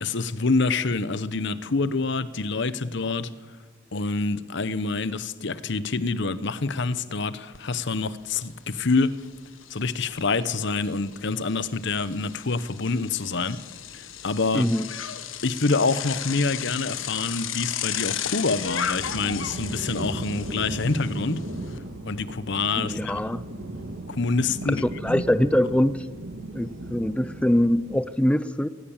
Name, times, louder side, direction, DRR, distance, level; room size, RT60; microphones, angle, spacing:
voice 1, 0.0-3.3 3.9-9.2 9.7-13.6 13.9-14.7 15.4-21.4 22.1-23.2 24.1-25.2, left 3 dB, 65° left, 15 dB, 1.0 m, -26 dB
Bicycle, 7.5-7.6 8.0-21.8, left 9 dB, 80° left, 1.4 m, -35 dB
voice 2, 14.5-14.9 22.8-23.4 24.7-26.1 26.5-28.7, left 1 dB, 5° left, 14 dB, 0.6 m, -23 dB
sound 1, 16.8-28.0, right 1 dB, 75° right, 2.5 m, -37 dB
20.5 x 19.0 x 7.3 m, 1.4 s
head